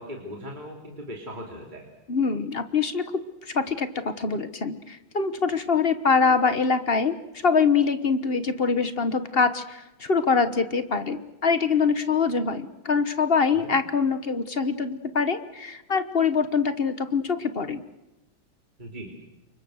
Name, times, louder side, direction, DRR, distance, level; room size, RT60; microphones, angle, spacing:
voice 1, 0.0-1.9 13.6-13.7 18.8-19.2, equal, 20° right, 0 dB, 3.3 m, -39 dB
voice 2, 2.1-3.0 3.4-7.2 7.4-17.8, left 5 dB, 35° left, 10 dB, 1.2 m, -24 dB
29.0 x 24.5 x 6.5 m, 0.99 s
omnidirectional pair, 2.2 m